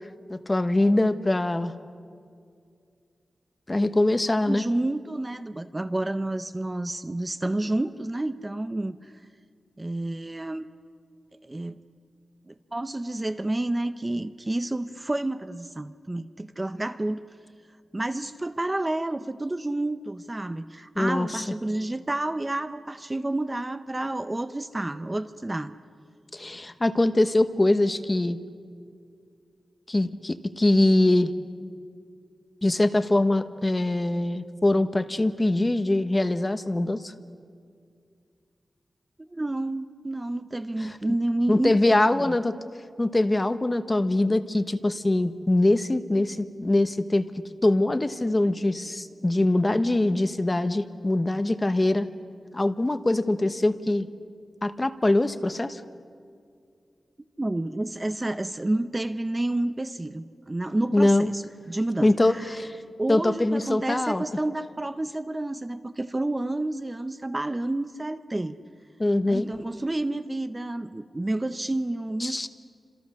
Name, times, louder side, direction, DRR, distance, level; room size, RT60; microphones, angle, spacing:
voice 1, 0.3-1.7 3.7-4.6 21.0-21.4 26.3-28.4 29.9-31.3 32.6-37.1 41.5-42.5 43.0-47.2 47.6-52.1 52.5-54.1 54.6-55.8 60.9-61.3 62.0-62.8 63.1-64.2 69.0-69.5 72.2-72.5, left 2 dB, 20° left, 10 dB, 1.1 m, -23 dB
voice 2, 4.5-9.1 9.8-10.7 11.4-11.8 12.5-17.2 17.9-25.7 39.3-42.4 57.4-62.5 63.0-68.6 69.3-72.5, right 1 dB, 20° right, 10 dB, 0.7 m, -30 dB
30.0 x 27.0 x 6.4 m, 2.3 s
wide cardioid pair, 125°, 0 cm